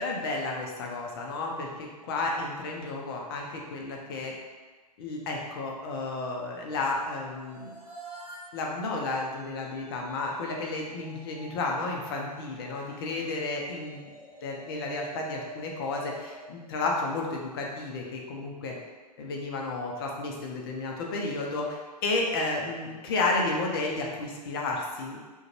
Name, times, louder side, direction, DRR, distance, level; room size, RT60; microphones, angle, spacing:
voice 1, 0.0-4.3 5.0-7.7 8.5-14.1 14.4-18.7 19.2-25.2, left 3 dB, 35° left, 0 dB, 0.4 m, -32 dB
sound 1, 7.3-17.5, right 2 dB, 5° left, 1.2 m, -48 dB
2.4 x 2.2 x 2.9 m, 1.3 s
figure-of-eight pair, 120°, 21 cm